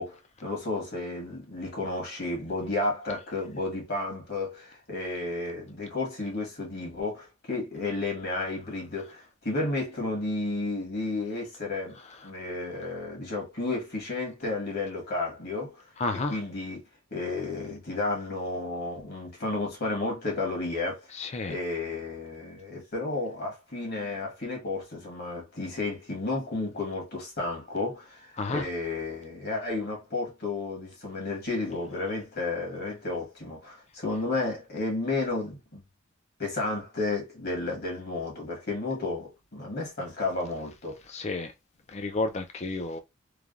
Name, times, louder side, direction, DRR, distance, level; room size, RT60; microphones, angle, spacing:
voice 1, 0.0-12.0 12.2-15.8 16.3-16.8 17.1-21.0 21.5-35.8 36.4-41.0, left 2 dB, 50° left, 1.3 m, -32 dB
voice 2, 16.0-16.4 21.2-21.5 28.4-28.6 41.1-41.5 41.9-43.0, left 3 dB, 30° left, 0.4 m, -30 dB
3.2 x 2.2 x 2.4 m
head